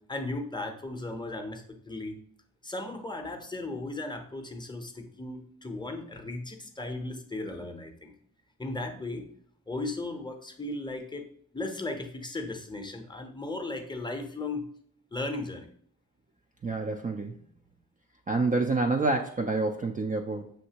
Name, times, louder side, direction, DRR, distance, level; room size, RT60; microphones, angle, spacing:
voice 1, 0.0-2.2 2.6-8.1 8.6-9.3 9.7-11.3 11.5-14.7 15.1-15.7, left 2 dB, 15° left, 4 dB, 0.7 m, -36 dB
voice 2, 16.6-17.3 18.3-20.5, right 3 dB, 25° right, 3 dB, 0.4 m, -28 dB
6.4 x 2.6 x 2.8 m, 0.62 s
cardioid pair, 75°, 34 cm